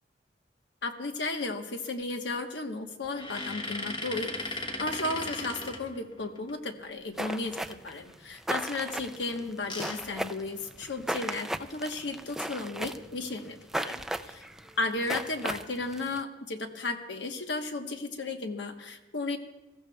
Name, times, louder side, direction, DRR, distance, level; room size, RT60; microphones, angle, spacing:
voice 1, 0.8-14.0 14.3-14.4 14.8-19.4, left 3 dB, 80° left, 5 dB, 1.1 m, -34 dB
sound 1, 3.0-6.5 9.2-11.1 11.7-11.8 12.0-12.2 13.7-14.0 14.7-15.2, left 2 dB, 25° left, 1.1 m, -38 dB
sound 2, 7.2-16.2, right 1 dB, 5° right, 0.3 m, -36 dB
22.5 x 14.0 x 2.3 m, 1.1 s
head